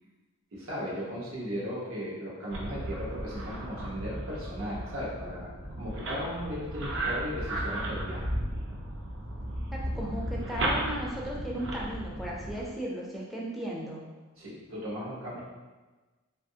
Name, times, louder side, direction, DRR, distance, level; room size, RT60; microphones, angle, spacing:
voice 1, 0.5-5.5 5.8-8.3 14.4-15.4, equal, 80° right, -6 dB, 1.0 m, -36 dB
sound 1, 2.5-12.6, right 1 dB, 60° right, 0.5 m, -35 dB
voice 2, 9.7-14.0, right 1 dB, ahead, -4 dB, 0.4 m, -36 dB
2.7 x 2.4 x 2.7 m, 1.3 s
head